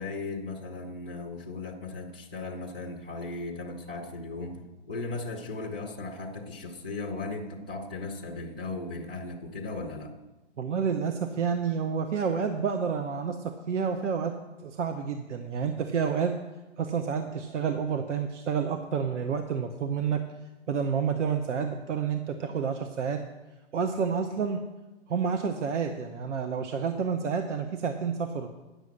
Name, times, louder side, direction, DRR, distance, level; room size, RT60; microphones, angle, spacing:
voice 1, 0.0-10.1, left 3 dB, 10° right, -12 dB, 0.3 m, -37 dB
voice 2, 10.6-14.3 14.6-16.3 16.8-20.2 20.7-23.2 23.7-24.6 25.1-28.5, right 6 dB, 80° right, 7 dB, 0.9 m, -29 dB
9.8 x 6.4 x 6.5 m, 1.1 s
hypercardioid pair, 155°, 35 cm